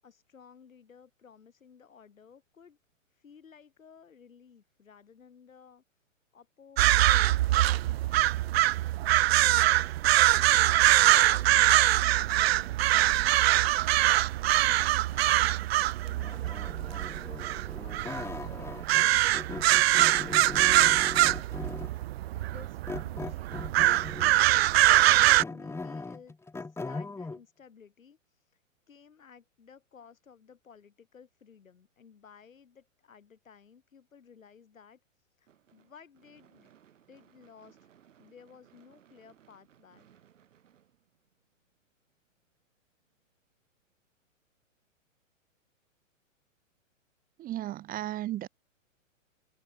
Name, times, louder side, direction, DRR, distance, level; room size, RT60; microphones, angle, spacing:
voice 1, 0.0-2.8 3.1-5.8 6.3-8.3 9.3-13.7 14.5-21.3 22.3-23.7 24.4-28.6 28.9-36.7 37.1-37.9 38.2-40.1, left 6 dB, 85° left, 7.1 m, -56 dB
sound 1, 6.8-25.4, right 15 dB, 50° right, 0.7 m, -23 dB
sound 2, 16.2-19.1 19.3-22.0 22.9-24.4 24.9-27.4, left 3 dB, 5° left, 2.7 m, -40 dB
Gunshot gunfire / Fireworks, 35.5-41.7, right 9 dB, 70° right, 6.3 m, -63 dB
voice 2, 47.4-48.5, right 14 dB, 20° right, 1.5 m, -34 dB
hypercardioid pair, 130°, 39 cm